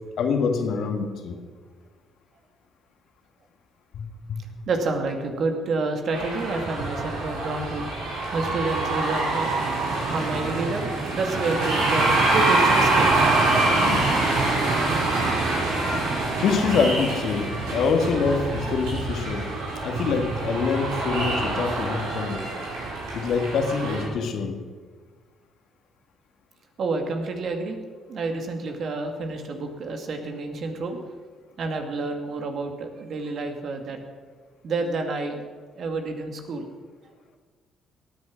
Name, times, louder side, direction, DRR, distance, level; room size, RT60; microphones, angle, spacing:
voice 1, 0.2-1.4 3.9-4.4 9.8-10.1 13.5-22.6 23.1-24.6, left 5 dB, 65° left, 4 dB, 2.0 m, -27 dB
voice 2, 4.7-7.9 8.3-9.8 10.1-13.1 26.8-27.8 28.1-31.1 31.6-34.0 34.6-35.4 35.8-36.7, right 3 dB, 55° right, 4 dB, 2.3 m, -29 dB
sound 1, 6.1-24.0, right 2 dB, 75° right, 4.5 m, -25 dB
17.5 x 9.5 x 6.4 m, 1.5 s
hypercardioid pair, 50°, 0 cm